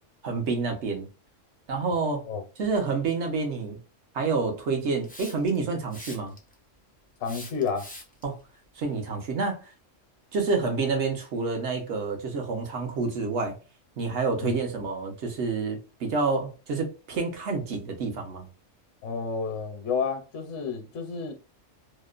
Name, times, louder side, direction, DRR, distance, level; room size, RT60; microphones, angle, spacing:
voice 1, 0.2-1.1 1.7-2.2 2.6-3.8 4.1-6.3 8.2-8.4 8.8-9.7 10.3-13.6 14.0-18.5, right 4 dB, 65° right, 1.1 m, -28 dB
Hiss, 5.0-5.6 5.9-6.5 7.2-8.2, left 1 dB, 15° left, 0.3 m, -43 dB
voice 2, 7.2-7.9 14.4-14.5 19.0-21.3, left 5 dB, 65° left, 0.9 m, -30 dB
2.9 x 2.1 x 2.3 m
omnidirectional pair, 1.3 m